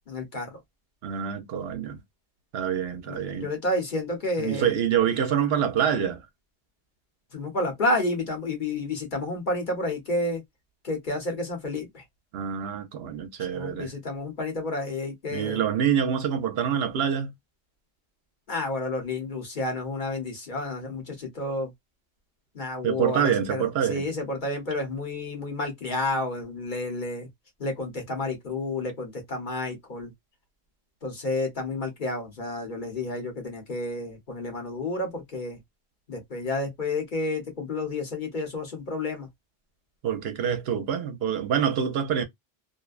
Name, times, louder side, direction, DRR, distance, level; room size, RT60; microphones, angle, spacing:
voice 1, 0.1-0.6 3.1-4.7 7.3-10.4 10.8-12.0 13.5-15.6 18.5-21.7 22.5-27.3 27.6-30.1 31.0-35.6 36.1-39.3, left 2 dB, 45° left, 1.0 m, -30 dB
voice 2, 1.0-2.0 2.5-3.5 4.4-6.2 12.3-13.9 15.3-17.3 22.8-24.1 40.0-42.2, right 8 dB, 70° right, 0.8 m, -26 dB
2.5 x 2.1 x 2.3 m
omnidirectional pair, 1.1 m